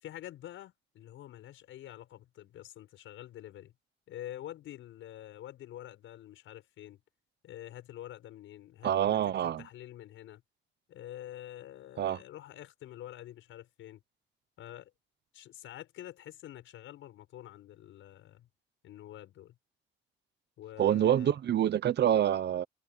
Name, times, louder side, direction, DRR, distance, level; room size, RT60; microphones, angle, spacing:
voice 1, 0.0-3.7 4.1-7.0 7.4-9.2 9.6-10.4 10.9-14.0 14.6-14.9 15.3-18.5 18.8-19.6 20.6-21.3, left 13 dB, 80° left, 6.8 m, -47 dB
voice 2, 8.8-9.6 12.0-12.2 20.8-22.6, right 10 dB, 60° right, 0.9 m, -26 dB
cardioid pair, 90°, 20 cm